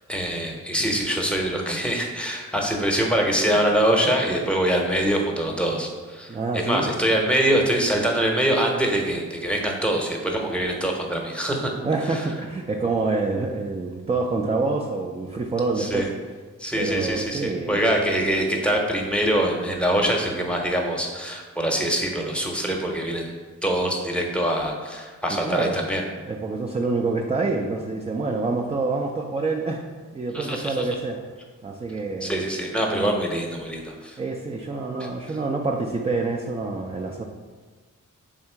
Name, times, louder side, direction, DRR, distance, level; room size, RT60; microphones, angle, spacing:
voice 1, 0.1-11.7 12.1-12.3 15.8-16.1 16.6-23.3 23.6-26.0 30.3-30.9 32.2-34.2 35.0-35.1, right 1 dB, 5° left, 0 dB, 0.8 m, -24 dB
voice 2, 6.3-6.9 11.8-16.1 16.7-17.8 25.3-25.7 26.3-29.8 30.1-31.2 31.6-32.4 32.9-33.1 34.2-37.2, right 3 dB, 20° right, 1 dB, 0.4 m, -26 dB
3.6 x 2.9 x 4.4 m, 1.4 s
cardioid pair, 50°, 32 cm